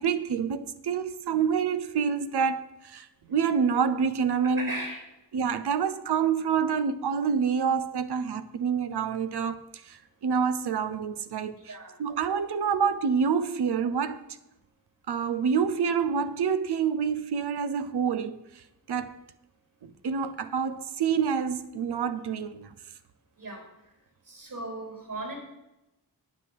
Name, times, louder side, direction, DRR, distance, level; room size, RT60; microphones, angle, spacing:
voice 1, 0.0-4.8 5.3-14.2 15.1-19.2 19.8-22.7, right 6 dB, 75° right, 1.0 m, -27 dB
voice 2, 4.6-5.0 11.6-11.9 23.4-23.7 24.3-25.3, right 2 dB, 55° right, 4.9 m, -37 dB
9.6 x 8.1 x 7.7 m
cardioid pair, 55°, 39 cm